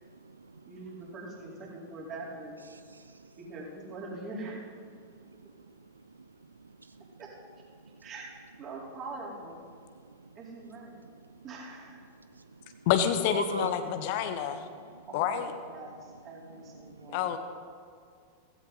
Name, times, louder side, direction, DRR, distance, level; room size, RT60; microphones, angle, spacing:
voice 1, 0.6-2.6 3.5-4.6 5.4-5.5 7.2-7.3 8.0-8.3 8.6-9.6 10.3-11.0 11.4-12.0 15.1-15.4 15.7-17.3, right 3 dB, 35° right, -4 dB, 4.5 m, -43 dB
voice 2, 2.7-3.2 5.0-5.3 6.8-7.0 12.4-12.8 13.3-13.7 16.8-17.1, right 3 dB, 80° right, 12 dB, 0.4 m, -40 dB
voice 3, 12.9-14.7 15.1-15.5 17.1-17.4, left 9 dB, 50° left, 8 dB, 1.0 m, -28 dB
16.5 x 15.5 x 4.3 m, 2.2 s
figure-of-eight pair, 90°, 0 cm